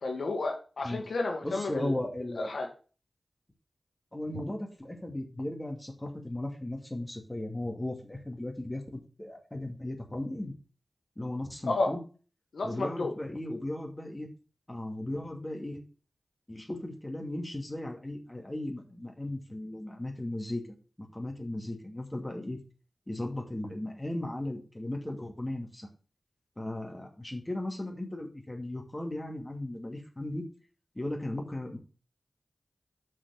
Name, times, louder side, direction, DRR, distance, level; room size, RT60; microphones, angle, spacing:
voice 1, 0.0-2.0 2.4-2.7 11.7-11.9 12.5-13.1, left 3 dB, 85° left, 2 dB, 1.8 m, -31 dB
voice 2, 1.4-2.5 4.1-10.5 11.2-12.0 12.6-14.3 14.7-15.8 16.5-20.6 21.0-22.6 23.1-25.9 26.6-30.4 31.0-31.8, left 1 dB, 20° left, 2 dB, 2.5 m, -36 dB
6.5 x 5.8 x 7.2 m, 0.36 s
cardioid pair, 45°, 0 cm